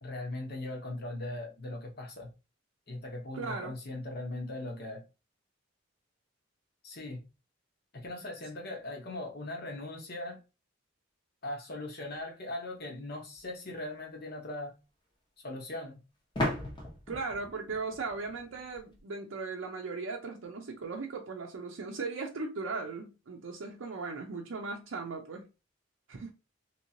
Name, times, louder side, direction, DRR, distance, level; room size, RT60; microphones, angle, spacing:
voice 1, 0.0-2.3 2.9-5.0 6.8-7.2 7.9-10.4 11.4-14.7 15.4-16.0, left 2 dB, 55° left, 1.1 m, -39 dB
voice 2, 3.3-3.8 17.1-25.5 26.1-26.3, right 4 dB, 80° right, 0.5 m, -38 dB
sound 1, 13.3-13.4 16.3-19.0, left 1 dB, 25° left, 0.8 m, -36 dB
3.0 x 2.9 x 2.8 m
head